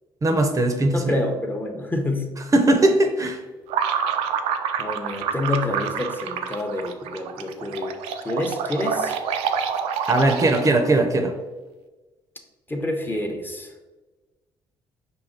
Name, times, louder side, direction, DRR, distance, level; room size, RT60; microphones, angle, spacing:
voice 1, 0.2-1.1 2.5-3.4 10.1-11.3, right 2 dB, 30° right, 5 dB, 0.6 m, -19 dB
voice 2, 0.9-2.3 4.8-8.0 8.2-9.2 12.7-13.7, left 1 dB, 20° left, 3 dB, 0.7 m, -28 dB
sound 1, 3.7-10.9, right 7 dB, 85° right, 0.4 m, -27 dB
4.9 x 2.7 x 3.8 m, 1.2 s
supercardioid pair, 75°, 10 cm